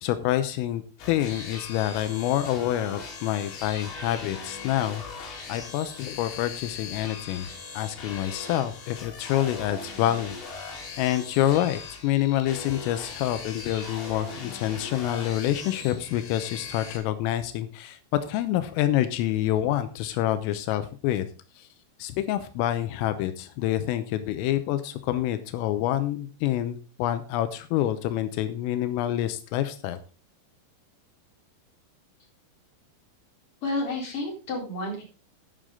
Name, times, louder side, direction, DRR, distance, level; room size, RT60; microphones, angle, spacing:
voice 1, 0.0-0.8 1.1-7.5 7.8-10.4 11.0-18.0 18.3-21.3 21.6-21.7 22.0-30.0, left 13 dB, 85° left, 10 dB, 3.5 m, -27 dB
sound 1, 1.0-17.0, left 4 dB, 65° left, 5.2 m, -40 dB
voice 2, 33.6-35.0, left 2 dB, 30° left, -1 dB, 4.4 m, -30 dB
11.5 x 9.4 x 3.8 m, 0.35 s
omnidirectional pair, 5.8 m